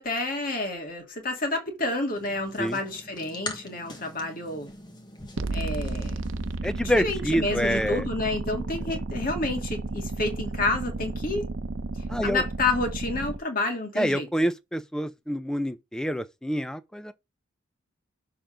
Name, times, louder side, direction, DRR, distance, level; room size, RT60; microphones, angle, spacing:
voice 1, 0.0-4.7 5.5-6.2 7.0-11.5 12.2-14.3, left 2 dB, 45° left, 2.1 m, -29 dB
sound 1, 2.1-6.6, left 2 dB, 20° left, 1.3 m, -42 dB
sound 2, 5.4-13.4, right 3 dB, 85° right, 0.7 m, -32 dB
voice 2, 6.6-8.0 12.1-12.4 14.0-17.1, equal, 5° left, 0.5 m, -27 dB
7.0 x 3.8 x 5.0 m
head